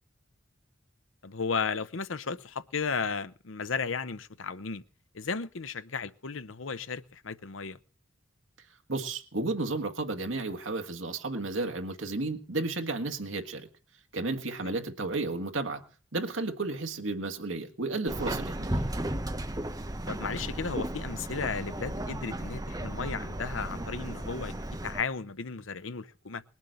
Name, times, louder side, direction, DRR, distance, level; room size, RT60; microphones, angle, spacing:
voice 1, 1.2-4.8 5.1-7.8 14.6-14.8 20.1-26.4, left 5 dB, 90° left, 0.9 m, -34 dB
voice 2, 8.9-13.7 14.1-15.8 16.1-18.7, right 3 dB, 85° right, 1.9 m, -32 dB
Subway metro underground, 18.1-25.0, right 1 dB, 20° right, 0.9 m, -35 dB
20.0 x 7.4 x 7.9 m
head